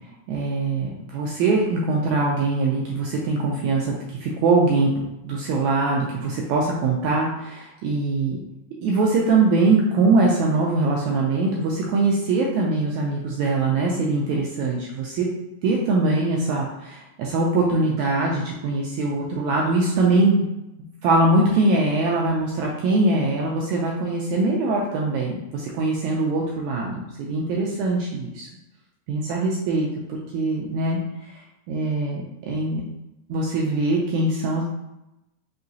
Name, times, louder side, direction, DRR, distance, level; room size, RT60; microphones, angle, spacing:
voice 1, 0.3-4.0 4.2-4.9 5.2-8.4 8.8-15.3 15.6-20.4 21.0-28.5 29.1-31.0 31.7-32.8 33.3-34.6, right 3 dB, 80° right, -2 dB, 1.7 m, -22 dB
5.5 x 2.9 x 2.7 m, 0.92 s
omnidirectional pair, 3.8 m